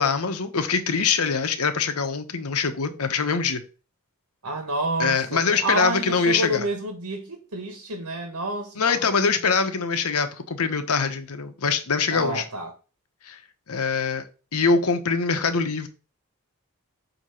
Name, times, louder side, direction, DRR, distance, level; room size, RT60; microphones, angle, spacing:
voice 1, 0.0-3.6 5.0-6.7 8.8-12.4 13.2-13.4 13.7-14.2 14.5-15.9, left 5 dB, 70° left, 1.0 m, -23 dB
voice 2, 4.4-9.3 12.1-12.7, right 2 dB, 85° right, 1.4 m, -29 dB
8.0 x 2.9 x 5.7 m
head